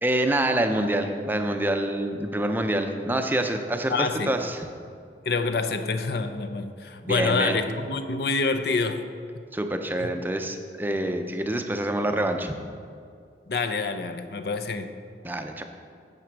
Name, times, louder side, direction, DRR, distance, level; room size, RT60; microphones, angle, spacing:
voice 1, 0.0-4.7 7.0-7.6 9.5-12.5 15.2-15.6, right 1 dB, 10° right, 5 dB, 0.5 m, -26 dB
voice 2, 3.9-4.4 5.2-9.0 10.0-10.1 13.5-14.9, left 4 dB, 65° left, 9 dB, 0.6 m, -27 dB
11.0 x 7.3 x 4.6 m, 2.3 s
head